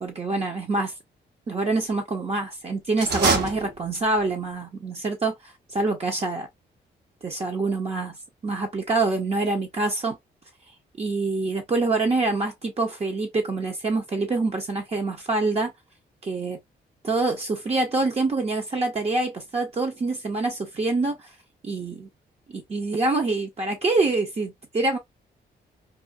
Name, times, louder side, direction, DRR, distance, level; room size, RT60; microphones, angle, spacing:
voice 1, 0.0-0.9 1.5-6.5 7.2-8.2 8.4-10.2 11.0-15.7 16.2-16.6 17.0-21.2 21.6-22.1 22.5-25.0, right 3 dB, 35° right, 0.7 m, -26 dB
sound 1, 2.9-4.3, right 4 dB, 60° right, 1.0 m, -25 dB
2.4 x 2.2 x 2.5 m
cardioid pair, 75°, 18 cm